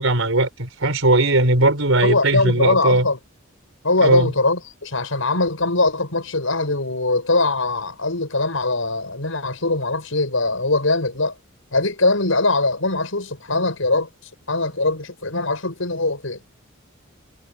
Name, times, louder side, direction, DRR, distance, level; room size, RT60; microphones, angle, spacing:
voice 1, 0.0-3.1 4.0-4.3, right 2 dB, 75° right, 4.6 m, -18 dB
voice 2, 2.0-3.2 3.8-11.4 11.7-16.4, left 2 dB, 75° left, 6.7 m, -22 dB
head